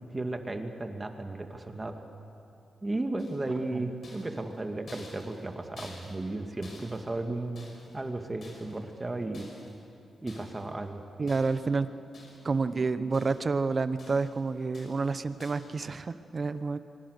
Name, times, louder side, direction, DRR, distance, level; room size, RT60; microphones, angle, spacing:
voice 1, 0.0-2.0 2.8-7.7 7.9-9.5 10.2-11.0, right 2 dB, 25° right, 5 dB, 2.2 m, -34 dB
sound 1, 3.2-3.6 4.0-6.4 6.6-8.0 8.4-8.9 9.3-9.8 10.3-10.7 11.3-11.8 12.1-12.6 12.9-13.6 14.0-14.4 14.7-15.1 15.4-15.8, left 2 dB, 55° left, 6.2 m, -51 dB
voice 2, 11.2-11.9 12.4-16.8, right 4 dB, 45° right, 12 dB, 1.0 m, -29 dB
25.0 x 24.0 x 6.7 m, 2.8 s
cardioid pair, 75°, 0 cm